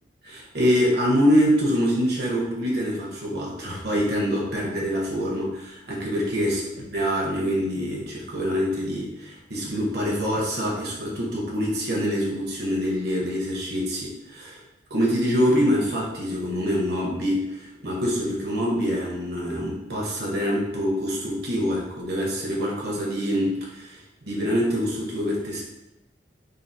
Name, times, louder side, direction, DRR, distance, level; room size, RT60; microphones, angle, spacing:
voice 1, 0.2-6.6 6.9-14.6 14.9-25.6, equal, 60° right, -3 dB, 1.1 m, -25 dB
3.9 x 2.0 x 4.1 m, 0.92 s
head